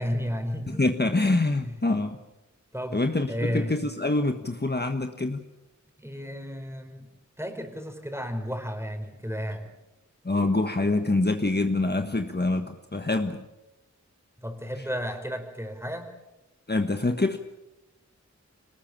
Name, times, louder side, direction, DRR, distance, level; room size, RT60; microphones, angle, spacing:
voice 1, 0.0-0.8 1.6-1.8 2.7-3.0 3.3-3.8 6.0-7.1 7.4-9.7 14.4-16.1, equal, 10° right, 6 dB, 4.6 m, -33 dB
voice 2, 0.7-2.2 2.9-5.4 10.2-13.4 14.8-14.9 16.7-17.4, left 2 dB, 35° left, 6 dB, 1.5 m, -25 dB
24.5 x 19.5 x 8.9 m, 0.96 s
wide cardioid pair, 50°, 30 cm